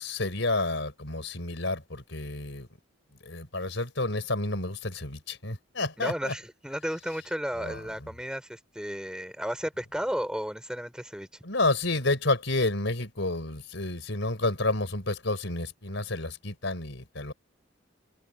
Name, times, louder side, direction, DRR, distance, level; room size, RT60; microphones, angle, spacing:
voice 1, 0.0-2.7 3.2-6.3 7.6-7.8 11.4-17.3, left 2 dB, 65° left, 4.5 m, -30 dB
voice 2, 6.0-11.3, equal, 5° right, 5.0 m, -33 dB
head